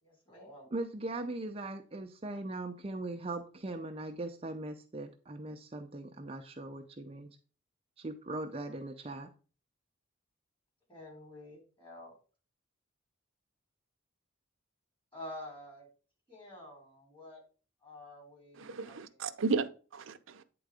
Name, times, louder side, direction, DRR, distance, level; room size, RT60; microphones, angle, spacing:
voice 1, 0.0-0.7 10.9-12.1 15.1-15.9 16.3-17.4 17.8-19.3, left 1 dB, 25° left, 3.7 m, -49 dB
voice 2, 0.7-7.3 8.0-9.3, right 2 dB, 30° right, 0.6 m, -40 dB
voice 3, 18.6-20.4, right 4 dB, 70° right, 0.6 m, -34 dB
9.0 x 3.9 x 4.9 m
head